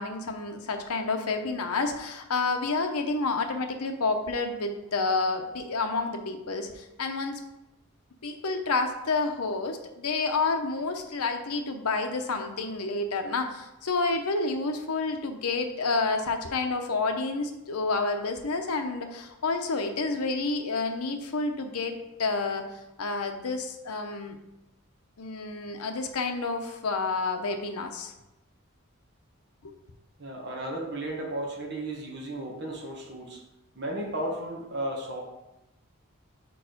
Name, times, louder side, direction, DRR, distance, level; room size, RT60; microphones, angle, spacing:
voice 1, 0.0-7.4 8.2-22.6 23.0-24.4 25.2-28.1 29.6-29.7, left 3 dB, 90° left, 5 dB, 0.7 m, -29 dB
voice 2, 30.2-33.4 33.7-35.2, right 1 dB, 50° right, 0 dB, 1.3 m, -34 dB
4.8 x 4.6 x 5.0 m, 0.93 s
head